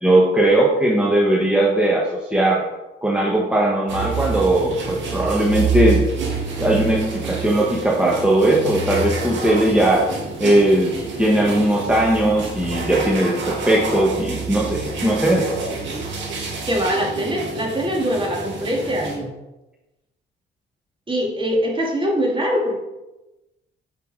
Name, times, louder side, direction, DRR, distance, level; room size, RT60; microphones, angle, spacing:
voice 1, 0.0-2.6 3.0-6.0 6.6-10.1 10.4-10.9 11.2-15.4, right 1 dB, 5° right, -3 dB, 1.6 m, -18 dB
sound 1, 3.9-19.2, right 4 dB, 70° right, 2.1 m, -28 dB
voice 2, 16.7-19.3 21.1-22.8, equal, 25° right, -1 dB, 2.3 m, -22 dB
8.3 x 5.7 x 4.9 m, 1.0 s
cardioid pair, 90°, 20 cm